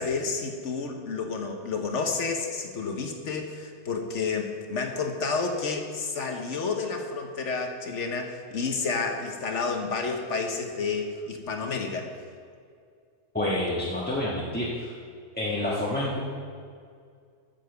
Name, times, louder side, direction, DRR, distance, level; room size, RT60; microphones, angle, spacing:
voice 1, 0.0-12.1, left 4 dB, 55° left, 4 dB, 1.2 m, -30 dB
voice 2, 13.3-14.9 15.3-16.2, left 1 dB, 5° left, -6 dB, 1.1 m, -28 dB
9.3 x 7.2 x 6.9 m, 2.2 s
omnidirectional pair, 1.7 m